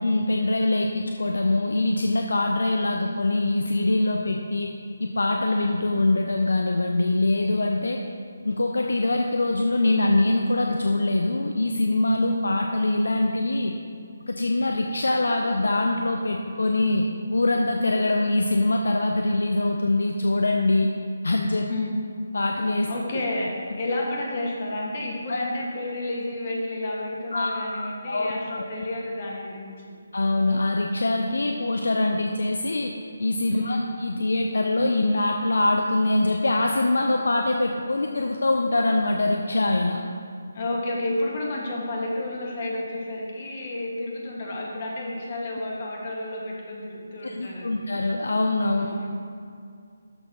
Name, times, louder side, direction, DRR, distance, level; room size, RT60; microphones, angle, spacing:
voice 1, 0.0-4.7 5.0-8.0 8.4-13.7 14.3-20.9 21.2-21.7 22.3-22.9 23.7-23.8 25.3-25.4 27.3-28.7 30.1-32.9 33.2-40.0 47.2-48.9, left 2 dB, 60° left, 2 dB, 0.6 m, -23 dB
voice 2, 22.9-29.8 33.5-33.9 40.5-47.9 48.8-49.1, left 2 dB, 35° left, -2 dB, 1.8 m, -31 dB
12.5 x 4.4 x 5.4 m, 2.4 s
figure-of-eight pair, 145°, 0 cm